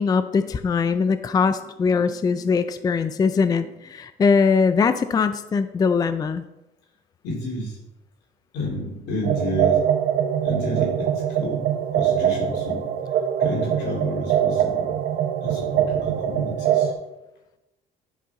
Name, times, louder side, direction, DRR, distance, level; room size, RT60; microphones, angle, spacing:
voice 1, 0.0-6.4, left 5 dB, 20° left, 11 dB, 0.4 m, -21 dB
voice 2, 7.2-7.8 8.5-9.8 10.4-11.6 11.9-12.8 13.4-14.9 15.4-16.9, left 1 dB, 85° left, -2 dB, 3.0 m, -30 dB
sound 1, 9.2-16.9, right 9 dB, 60° right, 0.8 m, -23 dB
10.5 x 5.5 x 3.6 m, 0.94 s
cardioid pair, 110°, 17 cm